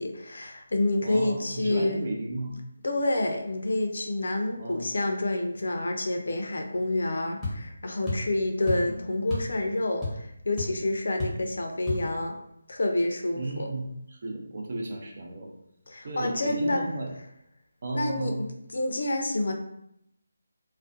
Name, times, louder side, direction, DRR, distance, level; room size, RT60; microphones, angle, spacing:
voice 1, 0.0-2.0 2.8-12.4 12.7-13.7 15.9-16.8 17.9-18.3 18.7-19.5, left 2 dB, 70° left, 4 dB, 0.4 m, -28 dB
voice 2, 1.0-2.6 4.6-4.9 8.8-8.9 13.4-15.5 16.0-17.1 17.8-18.5, right 2 dB, 50° right, 0 dB, 0.5 m, -34 dB
sound 1, 7.4-7.6 8.1-8.3 8.7-8.9 9.3-9.5 9.8-10.3 10.6-10.7 11.2-11.4 11.9-12.0, left 2 dB, 5° left, 0.7 m, -31 dB
2.4 x 2.1 x 2.5 m, 0.78 s
figure-of-eight pair, 160°, 0 cm